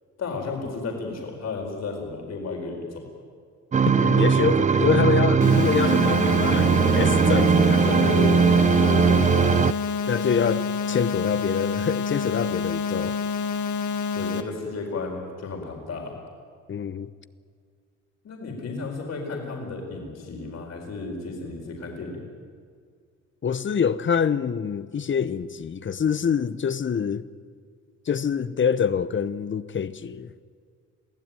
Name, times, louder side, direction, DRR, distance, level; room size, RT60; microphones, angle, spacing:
voice 1, 0.2-3.1 7.8-8.4 8.7-9.5 14.1-16.2 18.2-22.2, left 3 dB, 60° left, 4.6 m, -33 dB
sound 1, 3.7-9.7, right 6 dB, 25° right, 0.5 m, -19 dB
voice 2, 3.9-8.1 10.1-13.2 16.7-17.1 23.4-27.3 28.1-30.3, left 7 dB, 40° left, 1.0 m, -26 dB
sound 2, 5.4-14.4, left 5 dB, 75° left, 1.6 m, -28 dB
23.5 x 15.5 x 9.2 m
cardioid pair, 90°, 30 cm